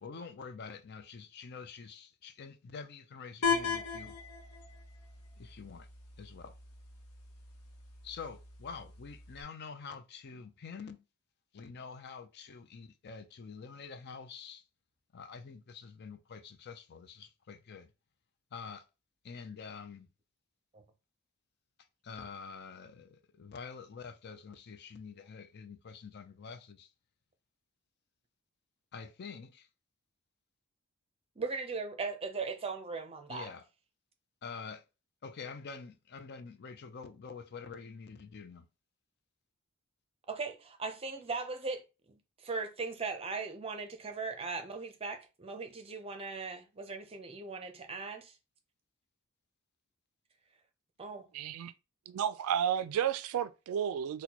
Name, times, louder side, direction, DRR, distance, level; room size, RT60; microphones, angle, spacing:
voice 1, 0.0-4.2 5.4-5.9 6.2-6.5 8.0-11.0 11.5-14.6 15.1-17.9 18.5-18.9 19.2-20.1 22.0-26.9 28.9-29.7 33.3-33.7 34.4-34.8 35.2-38.7, left 5 dB, 50° left, 0.4 m, -46 dB
sound 1, 3.4-9.4, left 6 dB, 85° left, 0.8 m, -38 dB
voice 2, 31.4-33.5 40.3-41.8 42.1-48.3 51.0-51.3, right 4 dB, 25° right, 0.6 m, -39 dB
voice 3, 51.3-51.7 52.1-54.2, right 9 dB, 75° right, 0.3 m, -32 dB
4.2 x 2.2 x 2.9 m
head